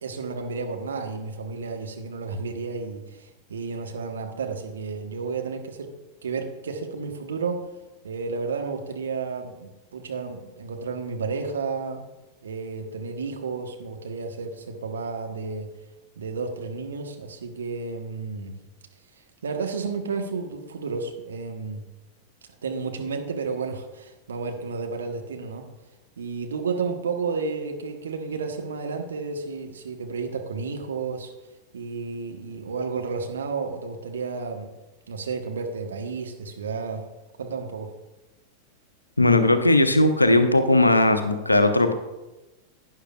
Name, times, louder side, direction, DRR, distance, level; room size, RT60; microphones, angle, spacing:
voice 1, 0.0-5.9 6.2-7.7 8.0-12.0 12.4-15.7 16.2-18.5 19.4-21.8 22.6-25.7 26.2-31.3 31.7-34.7 35.1-37.0 37.4-37.9, right 4 dB, 70° right, 4 dB, 1.1 m, -32 dB
voice 2, 39.2-41.9, left 2 dB, 85° left, 9 dB, 0.7 m, -18 dB
11.5 x 9.5 x 2.4 m, 1.1 s
figure-of-eight pair, 90°, 0 cm